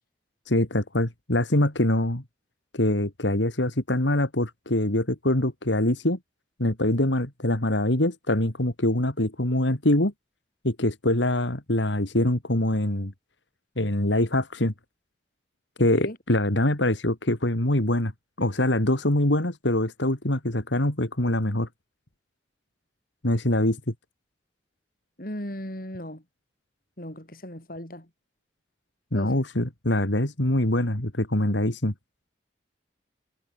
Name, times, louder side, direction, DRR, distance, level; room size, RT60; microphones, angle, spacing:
voice 1, 0.5-2.2 2.7-6.2 6.6-10.1 10.6-13.1 13.8-14.7 15.8-18.1 18.4-21.7 23.2-23.9 29.1-31.9, left 1 dB, 80° left, 3.1 m, -24 dB
voice 2, 15.8-16.2 25.2-26.2 27.0-28.1 29.1-29.4, left 1 dB, 50° left, 4.9 m, -37 dB
head